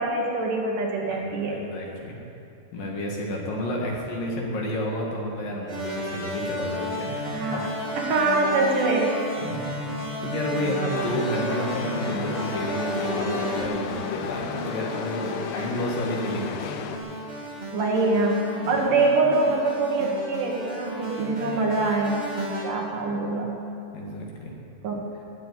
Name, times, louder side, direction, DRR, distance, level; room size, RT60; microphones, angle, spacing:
voice 1, 0.0-1.7 7.3-7.7 8.0-9.2 17.7-22.2 22.6-23.6 24.8-25.1, right 3 dB, 65° right, 0 dB, 2.6 m, -24 dB
voice 2, 1.1-2.2 2.7-7.6 9.4-16.8 18.7-18.8 22.9-23.2 23.9-24.5, left 1 dB, 65° left, -1 dB, 3.5 m, -31 dB
sound 1, 5.7-22.6, equal, 15° right, 2.2 m, -33 dB
Chatter / Subway metro underground, 10.9-17.0, left 7 dB, 85° left, 2.8 m, -34 dB
19.0 x 6.8 x 9.3 m, 2.7 s
omnidirectional pair, 4.5 m